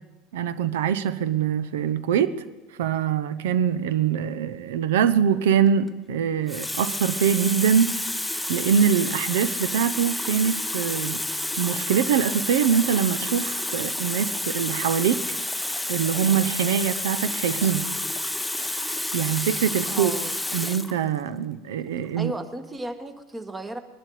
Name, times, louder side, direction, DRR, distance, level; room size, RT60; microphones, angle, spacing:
voice 1, 0.3-2.4 2.8-8.1 8.5-11.2 11.6-15.2 15.9-17.9 19.1-20.1 20.5-22.3, right 8 dB, 80° right, 0.8 m, -23 dB
Water tap faucet, 5.7-5.9 6.5-21.0 21.9-22.1, left 1 dB, 5° left, 0.7 m, -30 dB
voice 2, 19.9-20.3 22.2-23.8, right 1 dB, 20° right, 1.7 m, -34 dB
20.5 x 11.5 x 4.9 m
hypercardioid pair, 85°, 0 cm